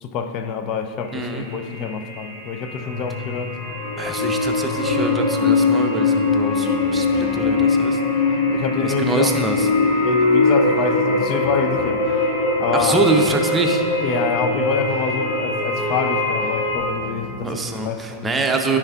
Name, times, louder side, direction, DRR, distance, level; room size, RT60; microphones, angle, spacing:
voice 1, 0.0-3.6 8.3-9.4 10.0-12.1 12.6-13.0 14.0-18.3, left 6 dB, 40° left, 8 dB, 0.5 m, -27 dB
sound 1, 1.0-1.1 1.4-16.8, left 3 dB, 60° left, 1.4 m, -21 dB
voice 2, 1.1-1.5 4.0-8.0 8.8-9.7 12.7-13.8 17.4-18.8, right 3 dB, 10° right, 3 dB, 0.7 m, -24 dB
sound 2, 2.8-17.9, left 3 dB, 20° left, 1.2 m, -37 dB
13.5 x 4.6 x 2.4 m, 2.4 s
figure-of-eight pair, 90°, 0 cm